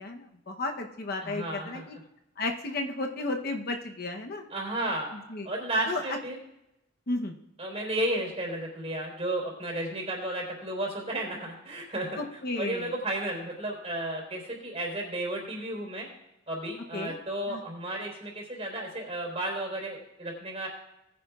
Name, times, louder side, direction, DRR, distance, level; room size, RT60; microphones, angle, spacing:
voice 1, 0.0-2.0 2.4-4.4 5.3-5.5 5.9-6.0 7.1-7.4 12.2-12.9 16.9-17.2 17.5-17.6, left 2 dB, 50° left, 3 dB, 0.9 m, -33 dB
voice 2, 1.2-1.8 4.5-5.1 5.4-6.4 7.6-16.1 16.5-20.7, right 1 dB, 30° right, -1 dB, 3.8 m, -33 dB
19.5 x 9.9 x 2.4 m, 0.87 s
head